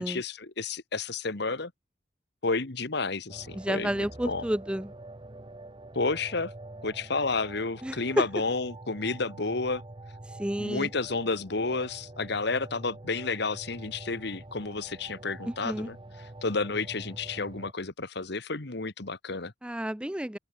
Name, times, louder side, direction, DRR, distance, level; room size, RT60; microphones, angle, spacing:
voice 1, 0.0-1.7 2.4-4.4 5.9-6.5 6.8-9.8 10.6-19.5, left 3 dB, 60° left, 1.6 m, -31 dB
sound 1, 3.3-17.7, right 2 dB, 25° right, 1.0 m, -46 dB
voice 2, 3.5-4.9 7.8-8.2 10.4-10.9 15.6-15.9 19.6-20.4, right 1 dB, 5° right, 0.5 m, -30 dB
open air
head